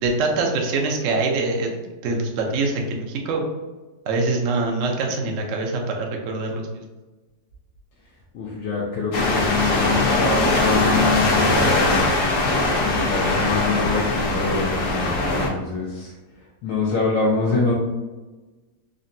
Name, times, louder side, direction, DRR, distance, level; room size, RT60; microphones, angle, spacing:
voice 1, 0.0-3.4 4.1-6.8, right 3 dB, 75° right, 1 dB, 0.7 m, -24 dB
voice 2, 8.3-12.1 12.8-16.1 16.6-17.7, left 4 dB, 80° left, -5 dB, 1.3 m, -25 dB
sound 1, 9.1-15.5, left 2 dB, 60° left, 0.9 m, -21 dB
3.7 x 2.1 x 2.5 m, 1.2 s
omnidirectional pair, 1.9 m